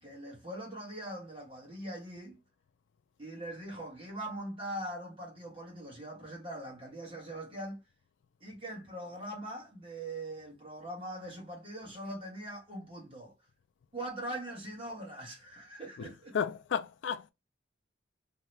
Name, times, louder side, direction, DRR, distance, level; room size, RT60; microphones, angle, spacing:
voice 1, 0.0-2.4 3.2-7.8 8.4-13.3 13.9-16.4, right 1 dB, 30° right, 1.3 m, -42 dB
voice 2, 16.3-17.3, left 7 dB, 70° left, 0.3 m, -33 dB
2.8 x 2.3 x 3.2 m
head